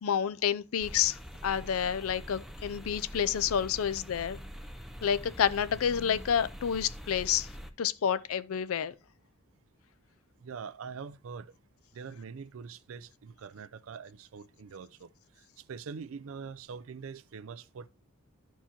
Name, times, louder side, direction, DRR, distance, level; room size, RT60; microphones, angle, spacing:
voice 1, 0.0-4.4 5.0-7.5 7.8-8.9, left 8 dB, 75° left, 0.4 m, -29 dB
sound 1, 0.8-7.7, equal, ahead, 0.4 m, -44 dB
voice 2, 10.4-11.5 11.9-15.1 15.4-17.9, right 5 dB, 70° right, 0.4 m, -44 dB
13.0 x 4.6 x 2.8 m
head